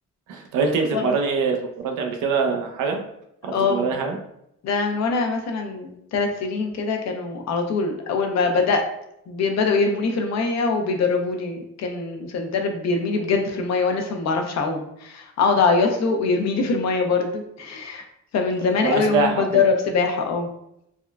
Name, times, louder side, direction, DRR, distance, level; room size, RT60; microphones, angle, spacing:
voice 1, 0.3-3.0 3.4-4.2 18.8-19.5, right 4 dB, 85° right, 3 dB, 0.5 m, -23 dB
voice 2, 3.5-3.9 4.6-8.8 9.3-18.0 18.3-20.5, left 4 dB, 60° left, 4 dB, 0.6 m, -23 dB
3.6 x 2.1 x 2.2 m, 0.77 s
cardioid pair, 90°, 30 cm